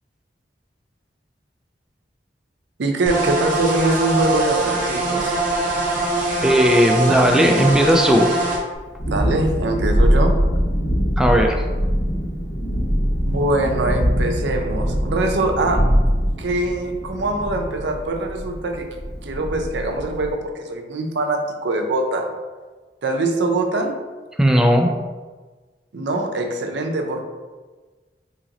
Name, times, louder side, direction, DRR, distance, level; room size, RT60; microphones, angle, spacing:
voice 1, 2.8-5.4 9.1-10.3 13.2-15.8 16.4-18.9 19.2-22.3 23.0-23.9 25.9-27.2, right 2 dB, 80° right, 3 dB, 0.5 m, -23 dB
sound 1, 3.1-8.6, right 2 dB, 50° right, 0.8 m, -22 dB
voice 2, 6.4-8.4 11.2-11.6 24.4-24.9, equal, 5° right, 2 dB, 0.3 m, -16 dB
Thunderstorm, 8.7-20.3, equal, 75° left, 1.1 m, -22 dB
2.9 x 2.9 x 3.8 m, 1.3 s
head